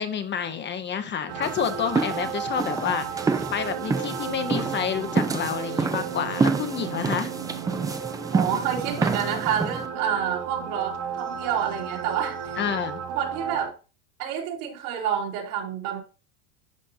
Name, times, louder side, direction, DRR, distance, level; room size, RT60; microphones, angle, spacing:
voice 1, 0.0-7.3 12.6-13.0, left 7 dB, 25° left, 9 dB, 0.7 m, -29 dB
sound 1, 1.3-13.7, right 7 dB, 35° right, 1.3 m, -34 dB
sound 2, 1.4-9.9, right 4 dB, 10° right, 0.4 m, -28 dB
voice 2, 8.3-12.4 13.1-13.7 14.2-16.0, right 9 dB, 75° right, -1 dB, 3.3 m, -28 dB
11.5 x 5.1 x 2.7 m, 0.33 s
supercardioid pair, 130°, 44 cm